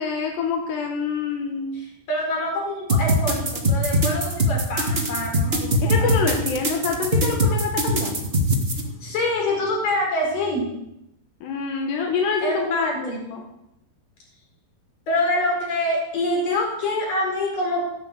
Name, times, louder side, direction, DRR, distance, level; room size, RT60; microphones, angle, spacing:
voice 1, 0.0-1.8 5.8-8.3 11.4-13.5, left 5 dB, 90° left, 2 dB, 3.8 m, -26 dB
voice 2, 1.7-6.1 8.7-10.7 12.4-13.2 15.1-17.8, left 1 dB, 55° left, 0 dB, 6.2 m, -26 dB
sound 1, 2.9-8.8, equal, 75° right, 0.5 m, -21 dB
14.5 x 11.0 x 8.0 m, 0.81 s
omnidirectional pair, 4.7 m